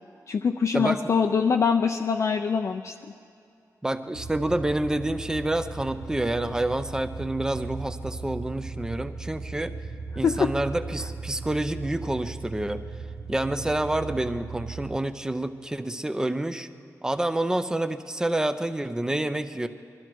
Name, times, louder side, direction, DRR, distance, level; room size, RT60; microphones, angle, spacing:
voice 1, 0.3-2.9 10.2-10.5, left 6 dB, 50° left, 4 dB, 0.5 m, -23 dB
voice 2, 3.8-9.7 10.2-12.8 13.3-16.7 17.0-19.7, right 1 dB, 10° right, 10 dB, 0.6 m, -28 dB
sound 1, 4.1-15.0, right 4 dB, 70° right, 0.9 m, -37 dB
22.0 x 13.0 x 4.6 m, 2.5 s
wide cardioid pair, 115°, 6 cm